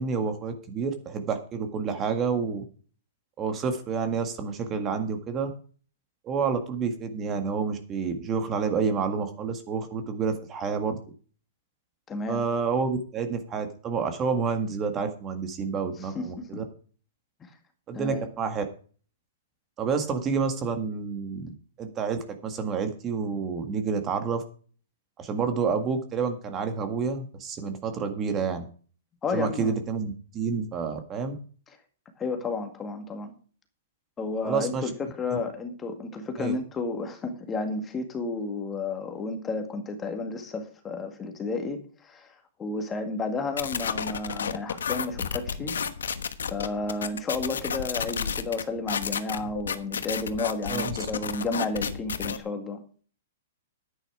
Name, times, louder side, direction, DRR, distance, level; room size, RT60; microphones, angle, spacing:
voice 1, 0.0-2.6 3.4-5.5 6.2-10.9 12.3-16.6 17.9-18.6 19.8-24.4 25.2-28.6 29.3-31.3 34.4-34.9 35.3-35.4 36.4-36.5 50.7-51.0, right 5 dB, 25° right, 7 dB, 1.8 m, -29 dB
voice 2, 12.1-12.4 16.1-16.6 17.9-18.3 29.2-29.8 32.2-33.3 34.2-45.8 46.5-52.8, left 3 dB, 15° left, 6 dB, 2.0 m, -32 dB
sound 1, 43.6-52.4, left 7 dB, 85° left, 1.2 m, -31 dB
10.5 x 9.3 x 4.9 m, 0.41 s
hypercardioid pair, 140°, 0 cm